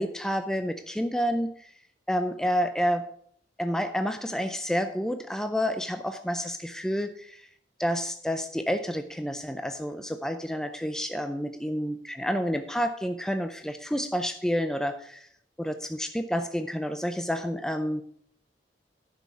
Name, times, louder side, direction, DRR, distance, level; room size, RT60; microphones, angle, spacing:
voice 1, 0.0-1.7 2.1-3.1 3.6-7.5 7.8-15.3 15.6-18.0, equal, 5° left, 8 dB, 0.4 m, -29 dB
10.5 x 6.2 x 5.6 m, 0.64 s
head